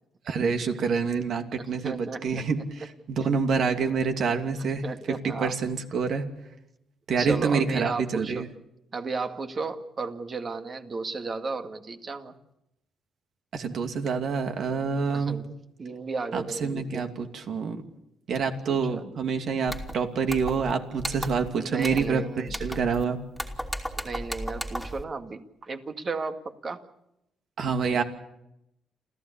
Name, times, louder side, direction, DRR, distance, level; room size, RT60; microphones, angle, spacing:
voice 1, 0.3-6.2 7.1-8.5 13.5-15.4 16.3-17.8 18.3-23.2 27.6-28.0, right 5 dB, 65° right, 5 dB, 2.6 m, -27 dB
voice 2, 1.5-2.4 4.8-5.5 7.2-8.4 8.9-12.4 15.1-17.0 18.7-19.1 21.6-22.5 23.9-26.8, right 4 dB, 40° right, 6 dB, 2.1 m, -34 dB
sound 1, 19.7-19.9 20.3-20.7 21.0-21.5 21.8-22.1 22.5-23.0 23.4-25.0, equal, ahead, 2.8 m, -35 dB
28.0 x 15.0 x 8.5 m, 0.85 s
cardioid pair, 90°, 0 cm